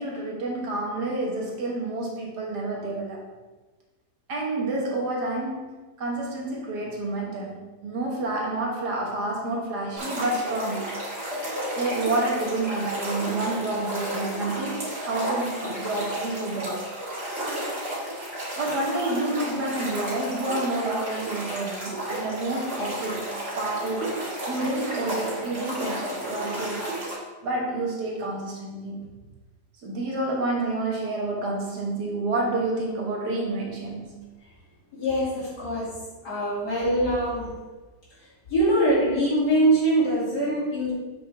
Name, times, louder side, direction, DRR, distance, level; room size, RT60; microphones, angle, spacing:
voice 1, 0.0-3.3 4.3-10.9 11.8-16.9 18.6-23.3 23.6-24.2 24.5-27.0 27.4-29.1 29.8-34.1, right 2 dB, 70° right, -2 dB, 1.9 m, -29 dB
sound 1, 10.0-27.1, right 1 dB, 35° right, 2.1 m, -32 dB
voice 2, 34.9-36.0 36.2-37.5 38.2-40.9, right 1 dB, 65° left, -7 dB, 2.9 m, -23 dB
7.4 x 5.9 x 3.3 m, 1.2 s
omnidirectional pair, 1.9 m